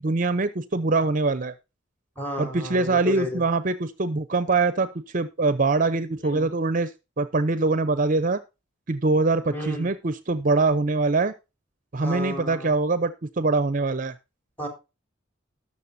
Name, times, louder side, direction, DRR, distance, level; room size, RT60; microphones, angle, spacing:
voice 1, 0.0-1.5 2.4-4.9 5.1-6.9 7.2-8.4 8.9-11.3 11.9-14.1, right 3 dB, 45° right, 13 dB, 0.7 m, -23 dB
voice 2, 2.2-3.4 6.3-6.5 9.5-9.9 12.0-12.7 14.6-14.7, left 1 dB, 10° left, 3 dB, 4.2 m, -32 dB
19.0 x 6.7 x 2.7 m, 0.28 s
head